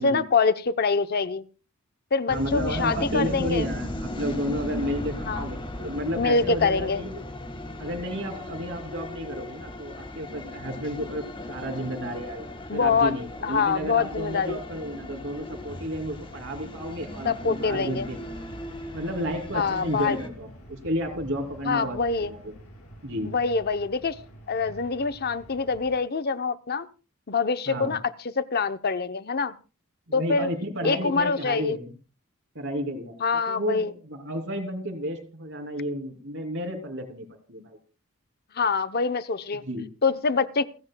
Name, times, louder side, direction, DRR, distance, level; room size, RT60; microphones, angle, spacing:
voice 1, 0.0-1.4 2.1-3.7 5.3-5.4 6.2-7.0 12.7-13.1 13.4-14.6 17.2-18.1 19.5-20.2 21.6-22.3 23.2-24.2 24.5-26.9 27.3-28.0 28.4-29.5 30.1-30.5 30.8-31.8 33.2-33.9 38.5-39.6 40.0-40.6, left 4 dB, 45° left, 12 dB, 0.7 m, -25 dB
sound 1, 2.3-20.3, left 1 dB, 25° left, 1.5 m, -37 dB
voice 2, 2.3-7.2 7.8-18.6 18.9-22.5 23.0-23.3 27.7-28.0 30.1-31.9 32.5-33.2 33.5-37.8 39.6-39.9, equal, 60° right, 4 dB, 2.9 m, -32 dB
sound 2, 15.5-26.0, equal, 85° left, 5.5 m, -47 dB
28.5 x 9.9 x 2.3 m, 0.34 s
head